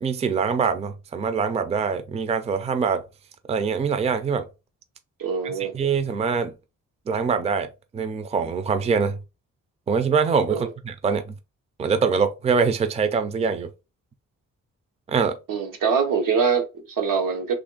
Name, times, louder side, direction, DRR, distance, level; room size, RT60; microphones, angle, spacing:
voice 1, 0.0-3.0 3.5-4.4 5.4-6.5 7.1-7.7 7.9-9.2 9.9-11.3 11.8-13.7 15.1-15.4, right 5 dB, 20° right, 0.4 m, -24 dB
voice 2, 5.2-5.7 10.5-10.7 15.5-17.6, right 6 dB, 90° right, 0.9 m, -24 dB
3.0 x 2.5 x 3.8 m
cardioid pair, 120°, 32 cm